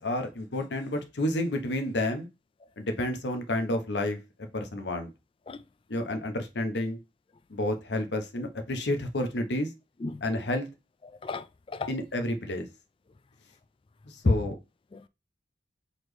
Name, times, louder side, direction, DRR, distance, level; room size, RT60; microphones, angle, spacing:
voice 1, 0.0-2.3 2.8-4.2 4.5-5.1 5.9-7.0 7.5-9.7 10.2-10.7 11.9-12.7 14.1-14.5, left 1 dB, 75° left, 0.9 m, -30 dB
voice 2, 11.0-11.9 14.2-14.5 14.9-15.1, left 3 dB, 30° left, 0.3 m, -30 dB
4.1 x 3.0 x 3.2 m
head